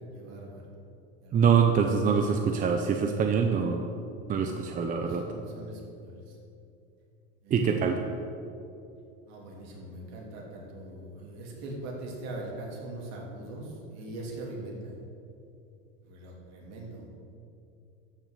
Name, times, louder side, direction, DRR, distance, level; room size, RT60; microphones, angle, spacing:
voice 1, 0.1-0.5 1.2-1.4 4.3-4.7 5.0-6.1 7.5-7.8 9.3-14.7 16.1-17.0, right 2 dB, 60° right, -2 dB, 3.1 m, -41 dB
voice 2, 1.3-3.8 4.3-5.3 7.5-8.0, right 6 dB, 25° right, 5 dB, 0.6 m, -24 dB
13.5 x 6.1 x 6.7 m, 2.7 s
cardioid pair, 150°, 31 cm